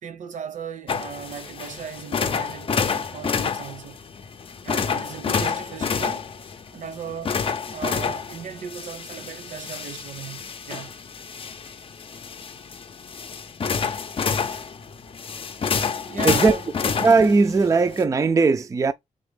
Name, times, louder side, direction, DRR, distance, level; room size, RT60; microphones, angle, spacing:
voice 1, 0.0-4.0 4.6-6.2 6.7-7.4 7.7-10.9 16.1-16.7, right 7 dB, 80° right, 0.8 m, -37 dB
sound 1, 0.9-18.0, left 6 dB, 45° left, 0.5 m, -29 dB
voice 2, 16.2-16.6 17.0-18.9, right 4 dB, 25° right, 0.3 m, -18 dB
4.0 x 3.4 x 3.5 m
wide cardioid pair, 175°, 13 cm